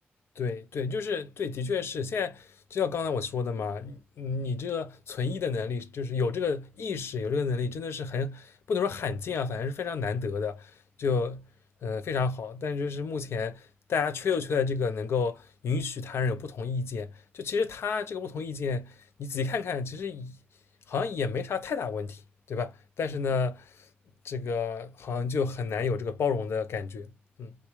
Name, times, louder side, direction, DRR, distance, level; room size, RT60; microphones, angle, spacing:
voice 1, 0.4-10.7 11.0-11.5 11.8-20.4 20.9-22.2 22.5-23.7 24.2-27.1 27.4-27.6, left 5 dB, 85° left, 0.4 m, -30 dB
3.4 x 2.1 x 3.0 m
wide cardioid pair, 105°, 4 cm